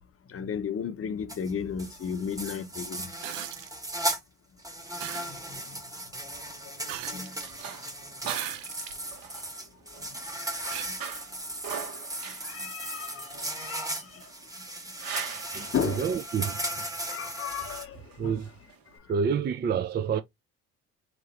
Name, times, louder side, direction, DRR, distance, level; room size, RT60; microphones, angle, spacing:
voice 1, 0.3-3.1 5.5-5.8 7.1-7.3 12.4-13.3 13.6-14.2 15.7-16.1 17.0-18.4, left 7 dB, 35° left, 0.8 m, -34 dB
sound 1, 1.3-1.5 1.8-4.2 4.6-17.9, right 1 dB, 10° right, 1.1 m, -37 dB
sound 2, 3.2-3.7 5.0-5.3 6.9-7.5 8.2-9.0 9.6-9.7 10.7-10.9 12.4-12.5, right 12 dB, 80° right, 0.6 m, -37 dB
sound 3, 6.7-19.0, right 7 dB, 60° right, 1.4 m, -43 dB
voice 2, 15.5-16.9 18.2-18.5 19.1-20.2, right 6 dB, 25° right, 0.4 m, -29 dB
3.4 x 3.0 x 3.0 m
hypercardioid pair, 60°, 39 cm